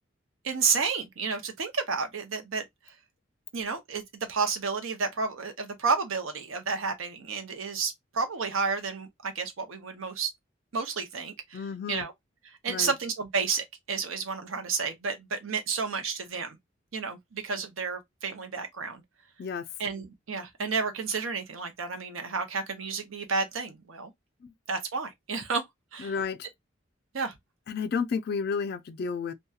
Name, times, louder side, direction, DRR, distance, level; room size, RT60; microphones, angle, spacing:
voice 1, 0.4-2.6 3.5-4.0 4.3-10.3 10.7-12.1 12.6-16.6 16.9-19.0 19.8-24.1 24.7-25.6 25.9-26.1 27.1-27.3, right 5 dB, 90° right, 0.7 m, -31 dB
voice 2, 11.5-12.1 12.7-12.9 19.4-19.7 24.4-24.5 26.0-26.5 27.7-29.3, left 5 dB, 50° left, 0.3 m, -31 dB
2.7 x 2.2 x 2.2 m
head